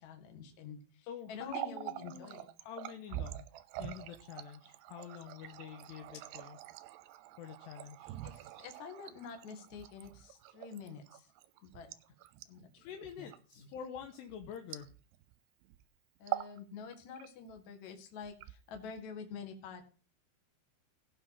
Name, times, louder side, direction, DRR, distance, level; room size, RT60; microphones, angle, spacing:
voice 1, 0.0-2.5 8.2-11.3 11.6-11.9 12.5-12.9 13.2-13.3 13.6-13.7 16.2-19.9, left 5 dB, 50° left, 5 dB, 2.6 m, -48 dB
voice 2, 1.0-3.5 3.8-6.6 7.4-8.3 12.8-14.9, left 9 dB, 75° left, 5 dB, 2.9 m, -47 dB
Water tap faucet, 1.3-15.3 15.6-15.8 16.2-16.6 16.9-17.6 18.2-19.0, right 15 dB, 80° right, 2.6 m, -45 dB
17.0 x 5.9 x 5.8 m, 0.37 s
omnidirectional pair, 5.3 m